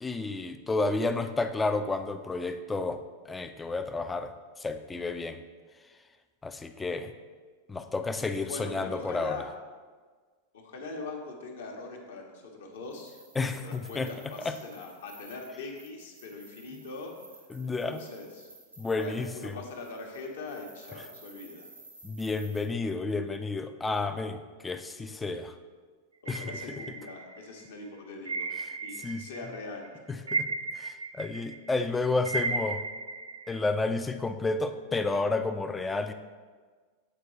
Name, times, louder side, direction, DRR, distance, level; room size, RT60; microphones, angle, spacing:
voice 1, 0.0-3.0 3.3-4.3 4.6-5.4 6.4-7.1 7.7-9.4 13.4-14.1 14.5-14.6 17.5-18.0 18.8-19.6 22.0-25.5 26.3-26.6 28.6-28.7 29.0-29.2 30.3-30.5 30.7-32.8 33.5-36.1, left 3 dB, 10° left, 8 dB, 0.4 m, -31 dB
voice 2, 8.5-9.5 10.5-17.1 17.6-18.5 18.9-21.7 26.2-28.5 28.8-29.9, left 3 dB, 60° left, 1 dB, 1.0 m, -42 dB
sound 1, 12.8-22.6, right 2 dB, 85° right, 1.6 m, -54 dB
sound 2, 26.3-27.6 28.3-29.6 29.8-33.6, right 4 dB, 70° right, 0.3 m, -35 dB
7.9 x 4.5 x 3.1 m, 1.5 s
figure-of-eight pair, 90°, 0 cm